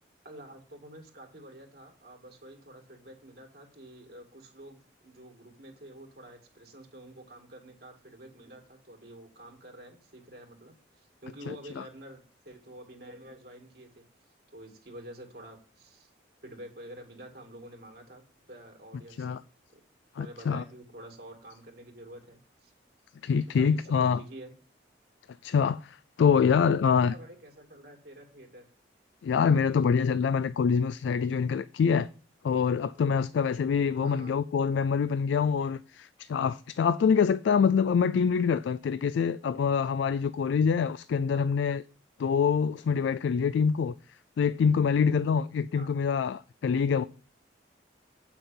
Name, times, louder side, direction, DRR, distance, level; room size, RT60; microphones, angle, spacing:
voice 1, 0.2-14.1 14.5-16.1 16.4-19.4 19.7-19.8 20.1-22.7 23.5-24.5 26.4-28.7 34.0-34.3 41.3-41.5 45.8-45.9, right 1 dB, 55° right, 1.9 m, -48 dB
voice 2, 20.2-20.6 23.2-24.2 25.4-27.1 29.2-32.1 32.4-41.8 42.2-43.9 44.4-47.0, left 6 dB, 75° left, 0.3 m, -25 dB
8.5 x 5.8 x 5.3 m
head